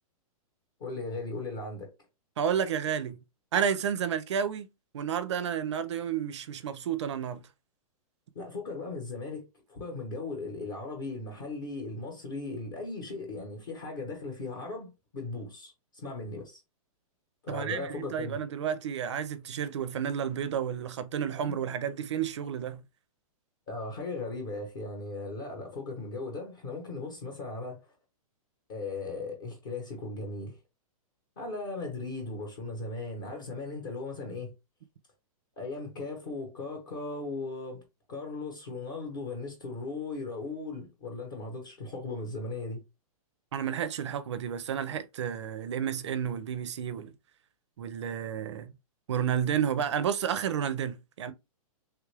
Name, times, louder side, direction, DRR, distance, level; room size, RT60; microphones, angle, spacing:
voice 1, 0.8-1.9 8.3-16.6 17.4-18.4 21.5-21.6 23.7-27.9 28.7-30.6 31.4-34.5 35.6-37.8 38.1-42.8, left 3 dB, 35° left, 0.9 m, -37 dB
voice 2, 2.4-3.2 3.5-4.7 4.9-7.4 17.5-22.8 43.5-47.1 47.8-48.7 49.1-51.3, right 8 dB, 50° right, 0.4 m, -31 dB
3.2 x 2.4 x 3.2 m
hypercardioid pair, 180°, 19 cm